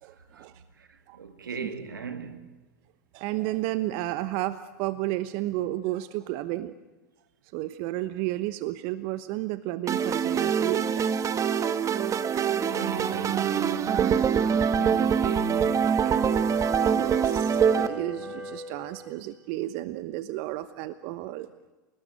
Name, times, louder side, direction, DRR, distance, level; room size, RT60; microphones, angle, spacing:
voice 1, 0.0-0.6 1.1-1.2 1.6-1.7 3.1-6.7 7.5-11.2 16.9-21.5, right 16 dB, 55° right, 1.1 m, -32 dB
voice 2, 0.8-2.5 12.7-16.6, right 5 dB, 90° right, 2.6 m, -39 dB
sound 1, 9.9-17.9, right 7 dB, 30° right, 1.7 m, -24 dB
sound 2, 15.9-19.2, left 1 dB, 10° right, 5.3 m, -39 dB
29.0 x 19.0 x 9.1 m
hypercardioid pair, 95°, 11 cm